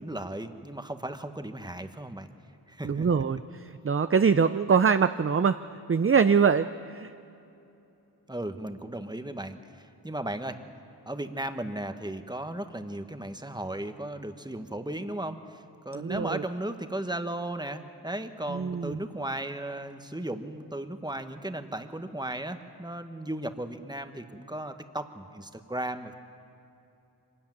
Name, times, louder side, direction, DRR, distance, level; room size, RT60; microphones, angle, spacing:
voice 1, 0.0-2.3 2.7-3.2 8.3-10.6 11.1-26.1, right 1 dB, 10° right, 8 dB, 1.2 m, -36 dB
voice 2, 2.8-5.6 5.9-7.1 15.9-16.4 18.5-19.0, right 6 dB, 35° right, 11 dB, 0.5 m, -24 dB
25.0 x 13.5 x 9.3 m, 2.8 s
wide cardioid pair, 60°, 40 cm